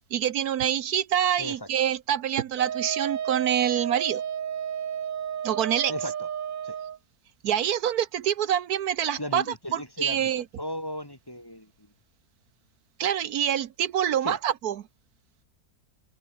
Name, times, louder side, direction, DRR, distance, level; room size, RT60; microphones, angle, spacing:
voice 1, 0.1-4.2 5.4-5.9 7.4-9.4 9.7-10.4 13.0-14.8, right 10 dB, 75° right, 1.3 m, -26 dB
voice 2, 1.4-1.7 5.9-6.3 6.6-6.8 9.2-11.9 14.2-14.4, left 1 dB, 15° left, 2.2 m, -36 dB
Wind instrument woodwind instrument, 2.6-7.0, right 8 dB, 55° right, 0.6 m, -32 dB
open air
omnidirectional pair, 1.7 m